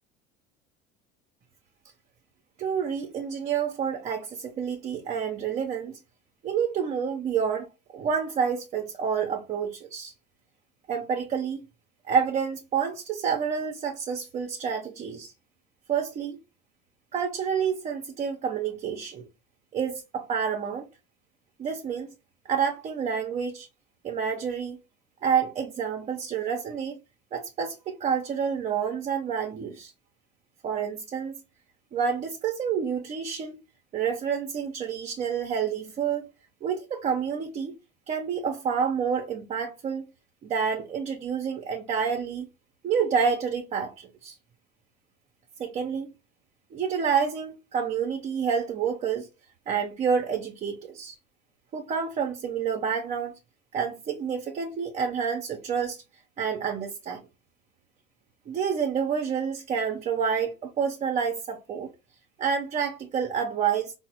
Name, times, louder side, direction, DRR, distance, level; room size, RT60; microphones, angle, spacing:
voice 1, 2.6-6.0 6.4-7.7 7.9-10.1 10.9-11.7 12.1-15.3 15.9-16.4 17.1-19.3 19.7-20.9 21.6-22.1 22.4-23.7 24.0-24.8 25.2-27.0 27.3-29.9 30.6-31.4 31.9-33.6 33.9-36.3 36.6-37.7 38.1-40.0 40.4-42.5 42.8-44.3 45.6-46.1 46.7-49.3 49.7-51.1 51.7-53.3 53.7-56.0 56.4-57.2 58.5-61.9 62.4-63.9, right 7 dB, 35° right, 0.5 m, -28 dB
3.7 x 2.0 x 2.8 m
supercardioid pair, 95°, 21 cm